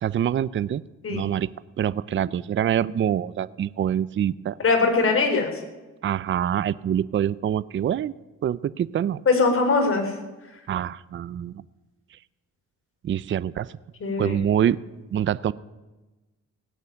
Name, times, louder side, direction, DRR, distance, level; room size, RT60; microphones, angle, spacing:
voice 1, 0.0-0.8 1.1-1.5 1.8-4.6 6.0-8.1 8.4-9.2 10.7-11.5 13.0-13.7 14.2-14.8 15.1-15.5, right 10 dB, 40° right, 19 dB, 0.5 m, -25 dB
voice 2, 4.6-5.5 9.3-10.1 14.0-14.4, left 4 dB, 45° left, 4 dB, 4.2 m, -21 dB
17.5 x 8.2 x 9.8 m, 1.1 s
cardioid pair, 90°, 30 cm